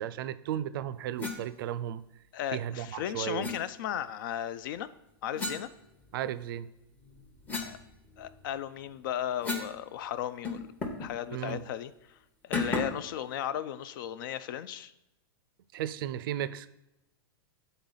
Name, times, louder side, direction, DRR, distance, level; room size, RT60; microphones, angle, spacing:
voice 1, 0.0-2.0 2.5-3.5 6.1-6.7 11.3-11.6 15.7-16.7, right 11 dB, 65° right, 15 dB, 0.4 m, -34 dB
sound 1, 1.2-1.4 3.4-3.6 5.4-6.4 6.9-9.8 10.0-10.1 10.4-11.1 11.5-11.6 12.5-13.1, left 3 dB, 15° left, 0.8 m, -36 dB
voice 2, 2.3-4.9 5.2-5.7 7.5-7.8 8.2-10.7 11.0-12.2 12.4-14.9, left 10 dB, 60° left, 15 dB, 0.4 m, -36 dB
7.1 x 4.0 x 3.8 m, 0.90 s
hypercardioid pair, 135°, 12 cm